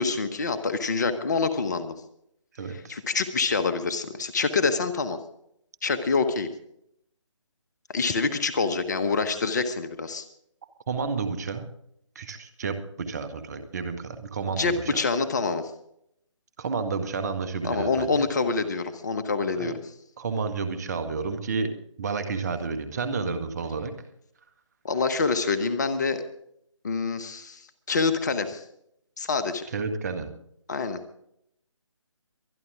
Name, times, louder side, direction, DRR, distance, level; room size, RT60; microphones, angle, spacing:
voice 1, 0.0-1.9 2.7-5.2 5.8-6.5 7.9-10.2 14.6-15.7 17.6-19.8 24.8-26.2 26.8-28.6 29.2-29.7 30.7-31.2, left 4 dB, 35° left, 10 dB, 1.2 m, -26 dB
voice 2, 2.5-3.0 10.9-11.7 12.1-15.0 16.6-18.1 19.6-19.7 20.2-21.7 22.0-23.9 29.7-30.3, right 4 dB, 30° right, 10 dB, 1.6 m, -31 dB
23.5 x 11.0 x 3.7 m, 0.73 s
figure-of-eight pair, 150°, 17 cm